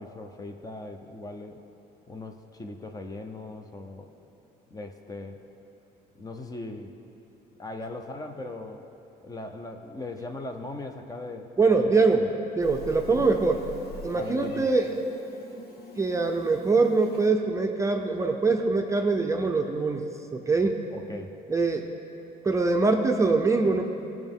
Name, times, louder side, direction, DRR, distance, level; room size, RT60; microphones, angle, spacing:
voice 1, 0.0-1.6 2.1-4.1 4.7-5.4 6.1-6.9 7.6-8.8 9.2-11.9 13.1-13.2 14.1-14.7 20.9-21.3, left 2 dB, 20° left, 5 dB, 0.7 m, -39 dB
voice 2, 11.6-12.3 12.6-13.6 14.0-14.9 16.0-20.0 20.3-20.8 21.5-21.9 22.4-23.9, right 3 dB, 20° right, 3 dB, 0.6 m, -23 dB
Meow, 12.6-17.3, left 1 dB, 65° left, 1.3 m, -44 dB
17.5 x 6.0 x 3.7 m, 2.7 s
cardioid pair, 110°, 17 cm